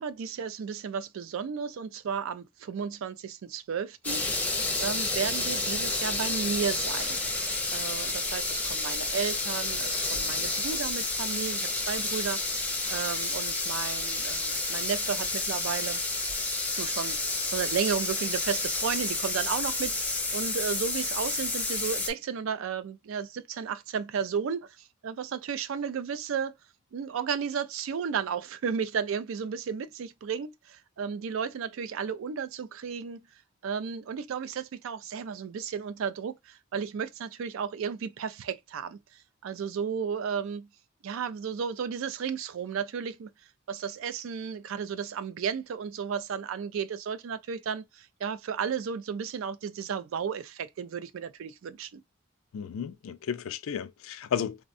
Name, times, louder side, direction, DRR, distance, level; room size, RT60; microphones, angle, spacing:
voice 1, 0.0-4.5 4.8-7.2 7.7-16.0 16.7-26.5 26.9-33.3 33.6-40.7 41.0-43.3 43.7-52.0, right 6 dB, 70° right, 0.3 m, -33 dB
sound 1, 4.0-22.1, left 2 dB, 5° left, 0.4 m, -30 dB
voice 2, 52.5-54.6, left 7 dB, 75° left, 0.4 m, -33 dB
3.5 x 2.1 x 2.4 m
head